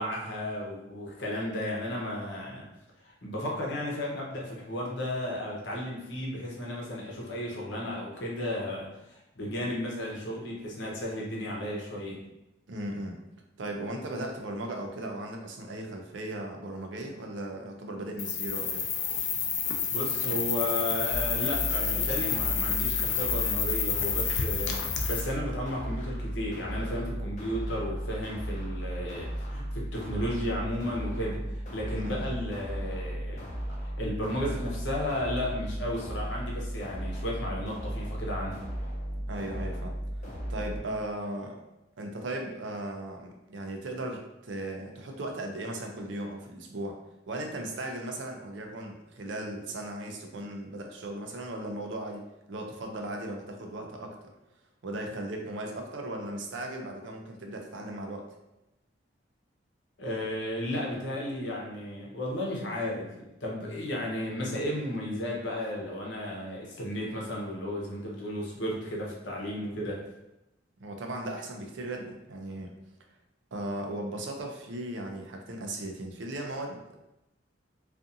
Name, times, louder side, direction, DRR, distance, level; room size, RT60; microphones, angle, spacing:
voice 1, 0.0-2.7 3.0-12.2 19.9-33.4 34.0-38.6 60.0-70.0, left 1 dB, 70° left, -3 dB, 0.8 m, -34 dB
voice 2, 12.7-13.2 13.6-18.8 31.9-32.3 39.3-39.9 40.5-41.6 42.0-47.0 47.3-54.2 54.8-58.3 70.8-72.7 73.5-77.0, right 1 dB, 75° right, 2 dB, 0.5 m, -37 dB
sound 1, 18.2-25.2, left 7 dB, 85° left, 0.4 m, -29 dB
sound 2, 21.1-40.8, right 1 dB, 40° left, 0.6 m, -35 dB
2.5 x 2.4 x 2.6 m, 0.92 s
head